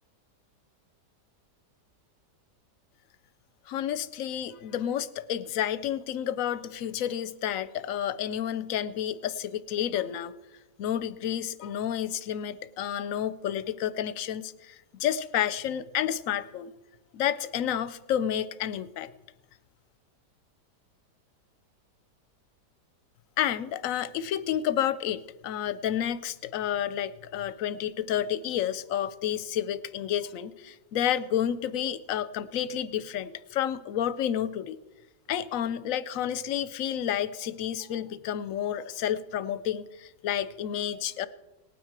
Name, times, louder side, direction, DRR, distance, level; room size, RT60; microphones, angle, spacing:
voice 1, 3.7-10.3 10.8-16.7 17.1-19.1 23.4-34.8 35.3-41.3, left 10 dB, 65° left, 15 dB, 0.9 m, -30 dB
18.5 x 9.4 x 4.7 m, 1.0 s
omnidirectional pair, 1.8 m